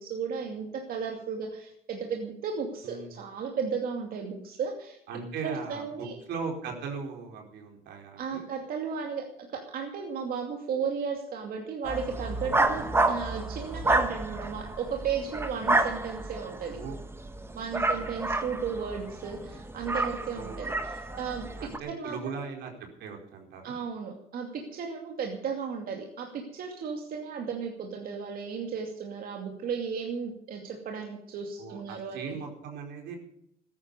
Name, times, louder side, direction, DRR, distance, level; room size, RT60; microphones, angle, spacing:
voice 1, 0.0-5.0 5.4-6.1 8.2-16.8 17.5-21.5 21.9-22.4 23.6-32.4, right 6 dB, 60° right, 2 dB, 2.6 m, -35 dB
voice 2, 5.1-8.5 12.8-13.0 16.7-17.0 17.7-18.2 20.3-20.6 21.6-23.8 31.6-33.2, right 5 dB, 80° right, 2 dB, 4.5 m, -39 dB
sound 1, 11.8-21.8, right 2 dB, 15° right, 1.4 m, -30 dB
14.5 x 11.0 x 6.8 m, 0.74 s
cardioid pair, 110°, 17 cm